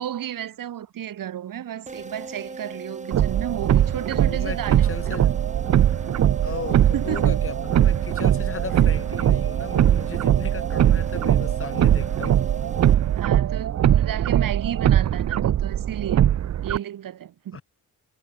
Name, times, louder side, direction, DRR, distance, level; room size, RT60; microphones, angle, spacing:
voice 1, 0.0-5.2 6.9-7.4 13.2-16.3 16.6-17.6, right 10 dB, 70° right, 1.1 m, -33 dB
sound 1, 1.9-13.6, right 3 dB, 20° right, 4.2 m, -38 dB
sound 2, 3.1-16.8, right 10 dB, 50° right, 0.6 m, -21 dB
voice 2, 4.1-5.3 6.4-12.4 17.5-17.6, left 5 dB, 40° left, 3.6 m, -36 dB
wide cardioid pair, 160°, 35 cm